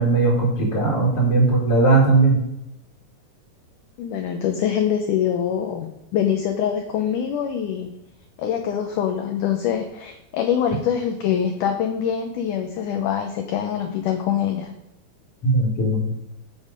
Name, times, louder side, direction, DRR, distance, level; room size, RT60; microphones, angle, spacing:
voice 1, 0.0-2.4 15.4-16.1, right 3 dB, 40° left, -6 dB, 2.7 m, -18 dB
voice 2, 4.0-7.9 8.4-14.7, left 9 dB, 80° left, 5 dB, 1.8 m, -24 dB
8.1 x 7.3 x 5.2 m, 0.87 s
omnidirectional pair, 4.5 m